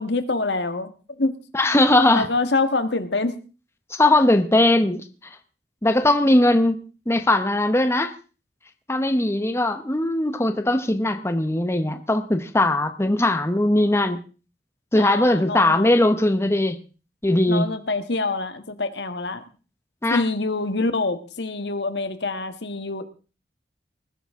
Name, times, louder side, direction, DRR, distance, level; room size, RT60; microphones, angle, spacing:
voice 1, 0.0-1.3 2.1-3.3 14.9-15.9 17.4-19.4 20.1-23.0, left 3 dB, 70° left, 9 dB, 1.6 m, -26 dB
voice 2, 1.5-2.3 3.9-5.0 5.8-6.8 7.1-8.1 8.9-14.2 14.9-16.8 17.2-17.7 20.0-20.2, left 1 dB, 15° left, 8 dB, 1.0 m, -19 dB
20.5 x 12.0 x 3.7 m, 0.35 s
head